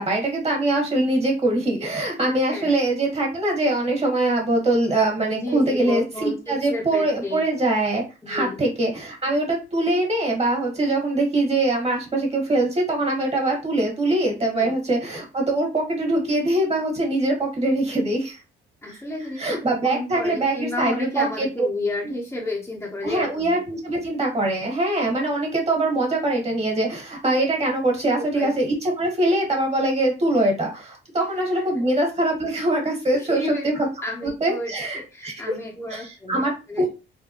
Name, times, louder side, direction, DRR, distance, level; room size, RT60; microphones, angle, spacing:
voice 1, 0.0-18.4 18.9-19.0 19.4-21.7 23.0-33.7 34.2-35.5 35.9-36.9, right 2 dB, 30° right, 0 dB, 1.6 m, -23 dB
voice 2, 2.2-2.7 5.3-7.4 8.2-8.7 14.5-14.7 18.8-19.5 19.8-23.5 28.3-28.5 31.8-31.9 33.1-33.7 34.0-36.4 36.7-36.9, left 2 dB, 10° left, -3 dB, 0.9 m, -31 dB
3.3 x 2.2 x 3.0 m, 0.31 s
cardioid pair, 90°, 20 cm